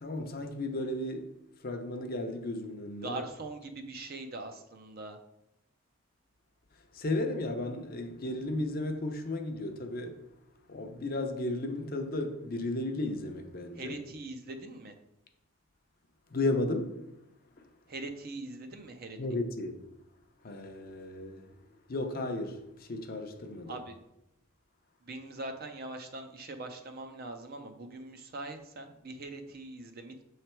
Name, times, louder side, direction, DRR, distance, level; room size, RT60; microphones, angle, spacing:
voice 1, 0.0-1.3 1.6-3.1 6.9-10.2 10.7-13.9 16.3-16.9 19.2-19.8 20.4-21.5 21.9-23.8, left 2 dB, 40° left, 0.6 m, -34 dB
voice 2, 3.0-5.2 13.7-14.9 17.9-19.2 23.7-24.0 25.0-30.2, right 2 dB, 45° right, 0.5 m, -42 dB
6.8 x 3.2 x 4.4 m
head